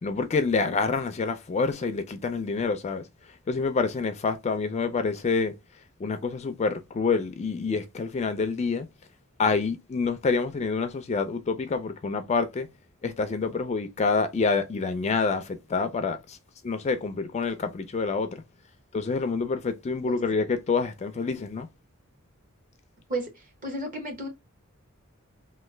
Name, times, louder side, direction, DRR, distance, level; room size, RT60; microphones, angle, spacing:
voice 1, 0.0-3.0 3.5-5.5 6.0-8.9 9.4-12.7 13.0-16.4 16.6-18.4 18.9-21.7, left 4 dB, 30° left, 0.3 m, -27 dB
voice 2, 23.6-24.3, right 1 dB, 40° right, 1.1 m, -32 dB
3.1 x 2.1 x 3.2 m
head